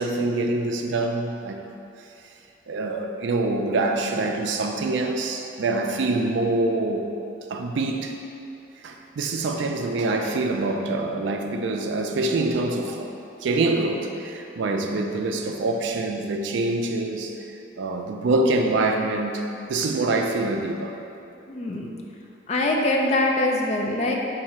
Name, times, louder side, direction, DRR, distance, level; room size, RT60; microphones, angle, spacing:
voice 1, 0.0-1.6 2.7-7.1 7.5-8.2 8.8-13.1 13.4-17.3 17.8-19.4 19.7-20.9, right 2 dB, 75° right, 4 dB, 0.4 m, -25 dB
voice 2, 21.5-21.9 22.5-24.1, left 2 dB, 35° left, 0 dB, 0.4 m, -23 dB
4.7 x 2.6 x 4.2 m, 2.8 s
head